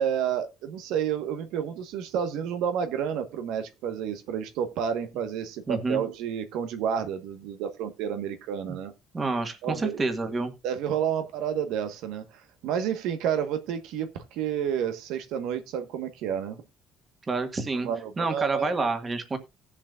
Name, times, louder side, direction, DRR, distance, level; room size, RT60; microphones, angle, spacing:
voice 1, 0.0-8.9 9.6-10.0 10.6-16.6 17.8-18.9, right 8 dB, 90° right, 8 dB, 1.4 m, -30 dB
voice 2, 5.7-6.0 9.1-10.5 17.3-17.9 18.2-19.4, right 3 dB, 20° right, 7 dB, 1.7 m, -28 dB
18.0 x 7.4 x 2.5 m, 0.24 s
cardioid pair, 150°, 0 cm